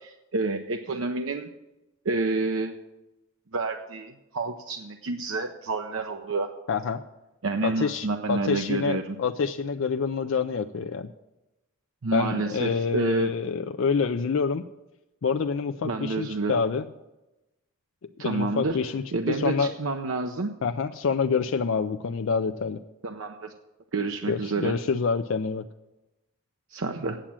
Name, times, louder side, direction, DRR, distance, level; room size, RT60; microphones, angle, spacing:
voice 1, 0.0-1.5 2.0-2.8 3.5-6.5 7.4-9.2 12.0-13.3 15.8-16.5 18.2-18.8 19.1-20.5 23.0-23.5 23.9-24.7 26.7-27.2, right 3 dB, 75° right, 5 dB, 0.6 m, -29 dB
voice 2, 6.7-7.0 7.6-11.1 12.1-14.6 15.2-16.8 18.2-19.7 20.6-22.8 24.3-25.6, left 5 dB, 65° left, 7 dB, 0.4 m, -27 dB
8.9 x 7.3 x 8.7 m, 0.99 s
head